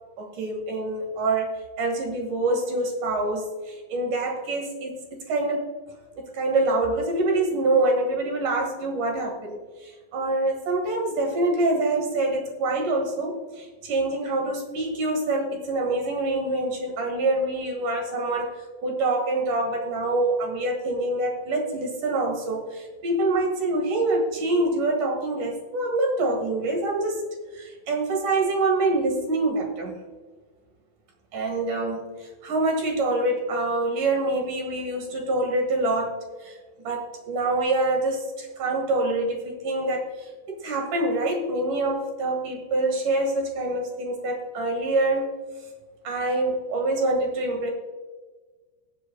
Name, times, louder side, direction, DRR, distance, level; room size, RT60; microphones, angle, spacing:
voice 1, 0.2-5.7 6.2-27.3 27.5-30.0 31.3-32.1 32.4-45.3 46.0-47.7, right 2 dB, 60° right, 2 dB, 3.1 m, -26 dB
21.5 x 7.8 x 2.3 m, 1.4 s
omnidirectional pair, 4.3 m